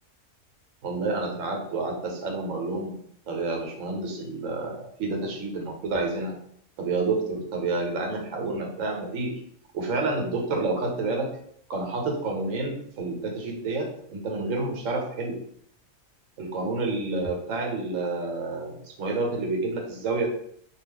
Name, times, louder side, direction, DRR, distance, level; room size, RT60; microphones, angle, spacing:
voice 1, 0.8-2.9 3.3-6.4 6.8-9.3 9.7-11.3 11.7-15.4 16.4-20.3, right 3 dB, 80° right, 1 dB, 1.1 m, -29 dB
2.4 x 2.2 x 3.4 m, 0.65 s
omnidirectional pair, 1.3 m